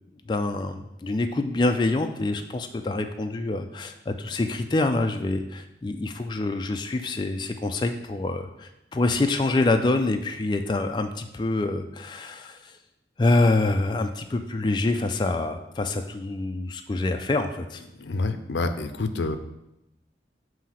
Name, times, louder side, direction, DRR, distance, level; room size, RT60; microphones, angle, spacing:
voice 1, 0.3-12.8 13.2-17.8, left 2 dB, 25° left, 5 dB, 0.3 m, -26 dB
voice 2, 18.0-19.4, left 3 dB, 85° left, 9 dB, 0.5 m, -27 dB
7.2 x 2.8 x 5.7 m, 0.88 s
head